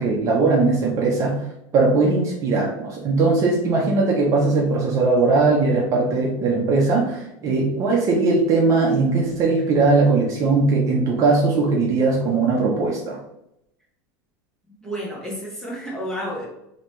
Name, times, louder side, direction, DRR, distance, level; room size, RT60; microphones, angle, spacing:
voice 1, 0.0-1.4 1.7-13.2, right 3 dB, 35° right, -1 dB, 0.8 m, -19 dB
voice 2, 14.8-16.5, equal, 5° left, -4 dB, 1.3 m, -31 dB
3.9 x 2.9 x 3.2 m, 0.81 s
supercardioid pair, 145°, 9 cm